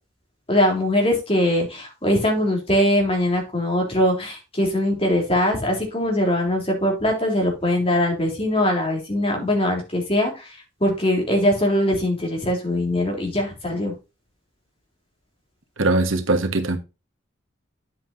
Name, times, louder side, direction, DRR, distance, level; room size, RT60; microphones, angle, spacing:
voice 1, 0.5-13.9, left 1 dB, 30° left, 3.6 m, -22 dB
voice 2, 15.8-16.8, right 2 dB, 85° right, 1.6 m, -21 dB
9.8 x 7.9 x 2.8 m
head